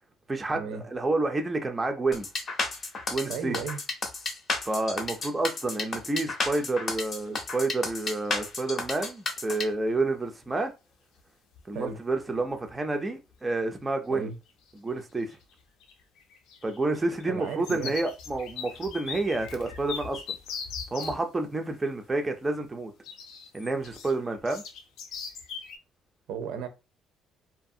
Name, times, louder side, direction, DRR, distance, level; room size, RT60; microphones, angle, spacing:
voice 1, 0.3-2.3 3.1-3.6 4.7-10.7 11.7-14.3 14.7-15.4 16.6-20.2 20.9-22.9 23.5-24.6, right 2 dB, 15° right, 0.4 m, -29 dB
sound 1, 2.1-9.6, left 3 dB, 35° left, 0.6 m, -31 dB
voice 2, 3.3-3.8 11.7-12.0 14.1-14.4 17.3-17.9 26.3-26.7, right 6 dB, 80° right, 0.5 m, -34 dB
sound 2, 7.5-7.6 7.9-8.5 10.4-10.5 11.2-11.3 11.5-11.9 12.2-12.8 13.3-13.4 14.5-14.9 15.2-21.2 23.0-25.8, left 6 dB, 90° left, 0.5 m, -41 dB
2.6 x 2.4 x 2.6 m
cardioid pair, 160°, 0 cm